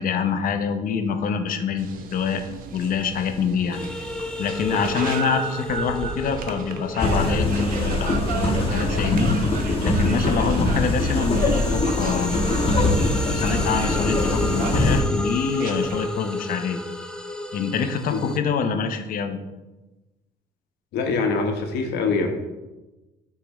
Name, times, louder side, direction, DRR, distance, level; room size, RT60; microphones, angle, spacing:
voice 1, 0.0-2.4 2.7-3.8 4.4-9.3 9.8-12.4 13.3-16.8 17.5-19.4, left 6 dB, 55° left, 7 dB, 0.8 m, -26 dB
sound 1, 1.8-16.1, right 5 dB, 55° right, 0.8 m, -35 dB
sound 2, 3.7-10.1 10.5-18.4, left 1 dB, 5° left, 0.5 m, -33 dB
sound 3, 7.0-15.0, left 2 dB, 35° left, 1.2 m, -22 dB
voice 2, 20.9-22.3, left 4 dB, 75° left, 3 dB, 1.1 m, -24 dB
8.6 x 4.5 x 3.1 m, 1.1 s
cardioid pair, 110°, 17 cm